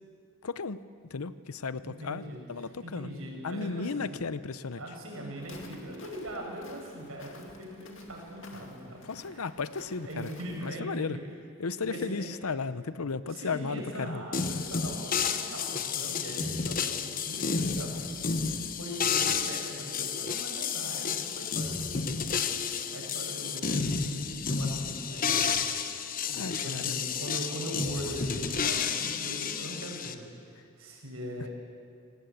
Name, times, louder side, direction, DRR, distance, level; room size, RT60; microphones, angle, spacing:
voice 1, 0.4-0.8 1.1-3.1 3.4-4.8 9.0-10.3 10.6-11.2 11.6-14.3 26.0-26.1 26.3-27.0 31.4-31.5, left 4 dB, 90° left, 15 dB, 0.8 m, -35 dB
voice 2, 1.8-2.4 2.8-4.1 4.7-9.0 9.3-9.4 10.0-11.3 11.8-12.3 13.3-22.2 22.9-25.5 26.3-31.5, equal, 75° right, 0 dB, 6.4 m, -41 dB
Walk footsteps, 5.4-10.7, left 3 dB, 60° left, 2.4 m, -51 dB
sound 1, 14.3-30.1, left 6 dB, 40° left, 1.0 m, -31 dB
25.0 x 18.0 x 8.3 m, 2.3 s
head